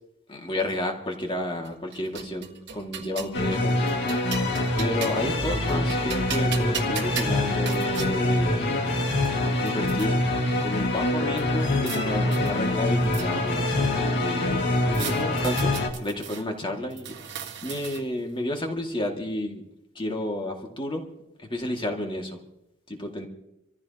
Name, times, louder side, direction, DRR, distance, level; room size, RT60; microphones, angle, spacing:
voice 1, 0.3-4.0 4.3-4.4 4.8-8.7 9.6-10.2 10.6-15.7 16.0-17.1 17.6-19.6 20.0-21.0 21.5-22.4 22.9-23.3, left 1 dB, 25° left, 2 dB, 2.2 m, -31 dB
sound 1, 1.6-3.4 3.9-5.3 5.7-8.1 8.9-9.0 9.2-10.1 11.4-12.0 12.3-13.6 14.9-16.4 16.9-18.2, right 7 dB, 55° right, 1.6 m, -37 dB
sound 2, 3.3-15.9, left 1 dB, 55° left, 2.1 m, -25 dB
27.0 x 14.5 x 2.9 m, 0.85 s
head